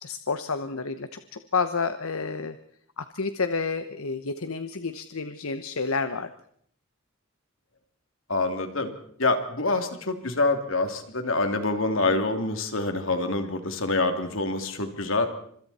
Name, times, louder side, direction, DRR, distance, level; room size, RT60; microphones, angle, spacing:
voice 1, 0.0-2.6 3.0-6.3, left 4 dB, 85° left, 10 dB, 1.1 m, -30 dB
voice 2, 8.3-8.9 9.2-15.3, left 2 dB, 70° left, 6 dB, 3.0 m, -26 dB
30.0 x 26.5 x 4.3 m, 0.63 s
head